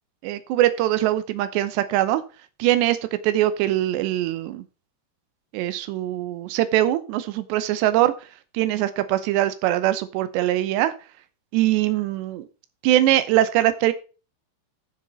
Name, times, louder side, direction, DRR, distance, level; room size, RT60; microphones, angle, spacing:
voice 1, 0.2-2.2 2.6-3.0 3.2-4.6 5.5-8.1 8.5-10.9 11.5-12.5 12.8-13.9, right 14 dB, 90° right, 12 dB, 3.1 m, -22 dB
12.0 x 6.9 x 4.4 m, 0.33 s
omnidirectional pair, 4.9 m